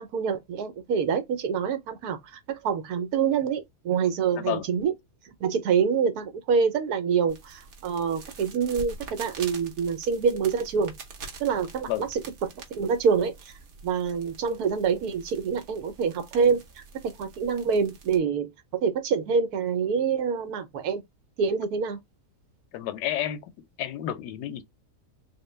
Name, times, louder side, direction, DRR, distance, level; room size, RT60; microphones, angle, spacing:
voice 1, 0.0-4.9 5.4-10.9 11.4-12.2 12.7-13.5 13.8-18.5 18.8-21.0 21.4-22.0, right 6 dB, 75° right, 1.2 m, -26 dB
voice 2, 4.3-4.6 11.9-12.1 22.7-23.5 23.8-24.6, left 11 dB, 90° left, 1.2 m, -30 dB
sound 1, 7.3-18.2, right 3 dB, 50° right, 1.0 m, -45 dB
3.7 x 2.1 x 3.1 m
omnidirectional pair, 1.7 m